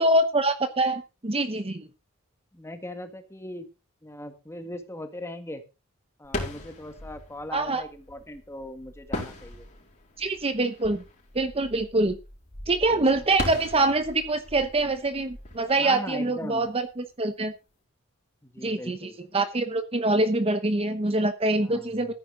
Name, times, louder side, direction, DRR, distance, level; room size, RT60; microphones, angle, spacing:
voice 1, 0.0-1.9 7.5-7.8 10.2-11.0 11.3-12.2 12.7-17.5 18.6-22.1, right 2 dB, 30° right, 9 dB, 0.9 m, -25 dB
voice 2, 2.5-3.7 4.0-5.6 6.2-9.6 12.9-13.3 15.8-16.7 18.4-19.2 21.6-22.0, left 1 dB, 15° left, 7 dB, 1.7 m, -39 dB
sound 1, 6.2-16.8, left 1 dB, 40° left, 4.5 m, -39 dB
14.5 x 9.6 x 3.8 m, 0.29 s
head